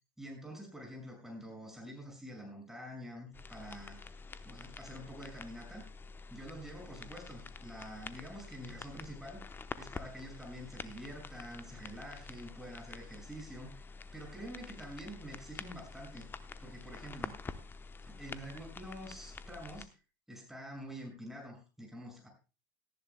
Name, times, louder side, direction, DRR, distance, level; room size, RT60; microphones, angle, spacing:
voice 1, 0.2-4.0 4.4-5.8 6.3-9.4 9.8-13.8 14.1-16.3 16.6-17.4 18.1-19.9 20.3-22.3, equal, 5° right, 1 dB, 5.9 m, -47 dB
sound 1, 3.3-19.9, left 4 dB, 20° left, 0.9 m, -48 dB
17.5 x 14.0 x 2.2 m, 0.32 s
figure-of-eight pair, 75°, 11 cm